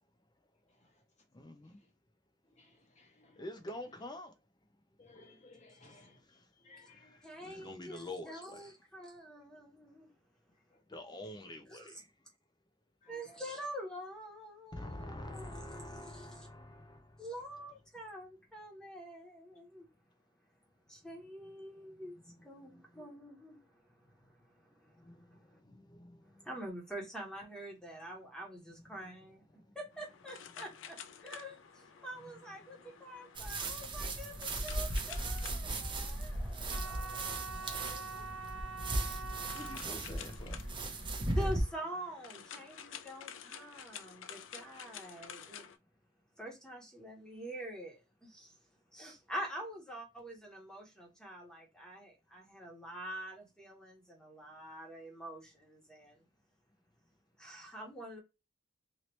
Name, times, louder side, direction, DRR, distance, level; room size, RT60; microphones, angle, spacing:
voice 1, 1.3-1.8 3.4-4.3 7.4-8.6 10.9-12.0 14.7-17.0 22.4-22.5 25.1-25.2 25.7-26.1 39.5-40.6, left 1 dB, 20° left, 0.5 m, -46 dB
voice 2, 2.5-3.4 5.0-7.2 7.5-7.6 10.9-11.0 13.0-13.4, left 2 dB, 40° left, 1.2 m, -60 dB
voice 3, 7.2-10.1 11.7-12.0 13.1-16.5 17.2-19.9 20.9-22.2 22.4-23.8 24.4-24.5 24.8-25.5 26.2-29.4 29.7-38.2 39.0-39.2 41.2-45.7 46.4-48.6 48.9-56.2 57.4-58.2, right 1 dB, 5° left, 1.3 m, -46 dB
sound 1, 29.9-45.8, left 8 dB, 90° left, 0.4 m, -52 dB
sound 2, 33.3-41.6, right 2 dB, 25° right, 0.7 m, -37 dB
sound 3, 36.7-42.9, right 4 dB, 90° right, 0.4 m, -46 dB
3.0 x 2.8 x 3.0 m
head